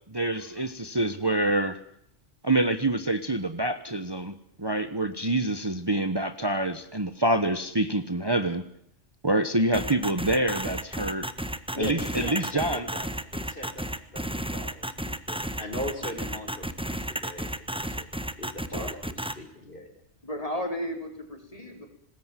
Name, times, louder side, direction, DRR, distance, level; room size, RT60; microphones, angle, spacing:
voice 1, 0.1-1.8 2.4-8.6 9.2-11.3 11.8-12.9, right 1 dB, 20° right, 10 dB, 1.3 m, -26 dB
sound 1, 9.7-19.3, right 1 dB, 5° right, 1.4 m, -32 dB
voice 2, 11.7-18.1 18.4-19.9, left 1 dB, 50° left, 6 dB, 5.0 m, -39 dB
voice 3, 20.2-21.9, equal, 30° left, 4 dB, 5.3 m, -34 dB
25.5 x 20.5 x 7.5 m, 0.71 s
omnidirectional pair, 1.2 m